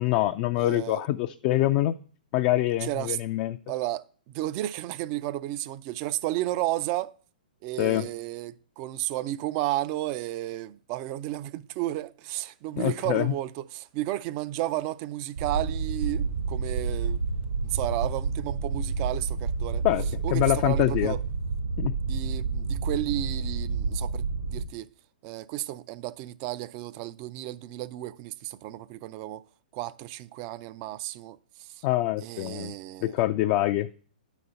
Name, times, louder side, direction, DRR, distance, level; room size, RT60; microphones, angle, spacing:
voice 1, 0.0-2.0 2.3-3.6 7.8-8.1 12.8-13.3 19.8-21.1 21.8-21.9 31.8-32.7 33.0-33.9, left 15 dB, 35° left, 0.4 m, -25 dB
voice 2, 0.6-1.0 2.8-3.2 3.7-7.1 7.6-17.2 17.6-19.8 20.2-21.2 22.0-24.9 25.2-29.4 29.7-31.9 32.2-33.2, right 15 dB, 35° right, 0.4 m, -33 dB
sound 1, 15.4-24.6, right 4 dB, 70° right, 1.6 m, -29 dB
9.6 x 4.1 x 5.5 m
figure-of-eight pair, 120°, 5 cm